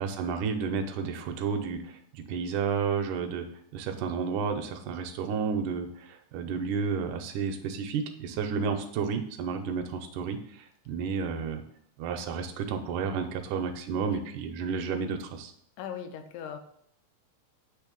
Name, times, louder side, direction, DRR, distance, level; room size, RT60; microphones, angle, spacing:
voice 1, 0.0-3.5 3.7-11.6 12.0-15.5, right 5 dB, 80° right, 5 dB, 2.1 m, -31 dB
voice 2, 15.8-16.6, left 8 dB, 80° left, 7 dB, 2.1 m, -38 dB
8.3 x 3.3 x 5.2 m, 0.67 s
omnidirectional pair, 3.8 m